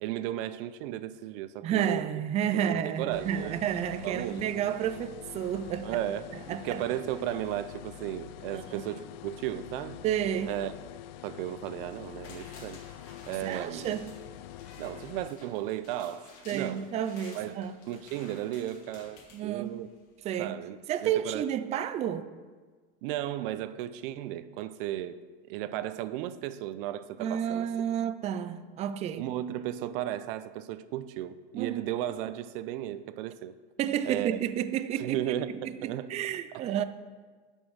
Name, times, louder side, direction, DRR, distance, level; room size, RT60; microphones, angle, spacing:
voice 1, 0.0-2.1 2.5-3.6 4.0-4.5 5.8-10.0 10.5-10.7 11.2-12.8 13.3-13.9 14.8-16.9 17.3-19.9 20.4-21.5 23.0-25.2 25.4-27.7 29.2-33.6 34.1-34.4 35.0-36.1, right 12 dB, 70° right, 0.6 m, -35 dB
voice 2, 1.6-6.0 6.5-6.8 8.5-8.8 10.0-10.6 13.4-14.1 16.5-17.7 19.3-19.8 20.2-20.6 20.9-22.3 27.2-29.2 31.5-31.8 33.8-36.8, right 9 dB, 25° right, 0.3 m, -31 dB
sound 1, 3.1-15.3, left 13 dB, 90° left, 0.5 m, -45 dB
sound 2, 11.9-20.1 20.4-20.5, left 3 dB, 50° left, 2.3 m, -53 dB
11.0 x 5.5 x 6.3 m
supercardioid pair, 150°, 29 cm